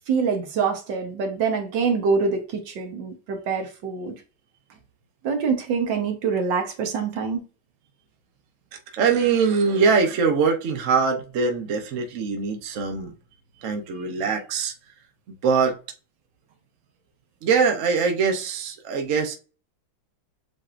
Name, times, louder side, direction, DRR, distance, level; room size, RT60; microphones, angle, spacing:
voice 1, 0.1-4.1 5.2-7.4, right 5 dB, 70° right, 1.7 m, -25 dB
voice 2, 8.9-13.1 13.6-14.7 15.4-15.8 17.4-19.3, right 5 dB, 55° right, 1.0 m, -22 dB
7.6 x 2.7 x 2.5 m
omnidirectional pair, 2.1 m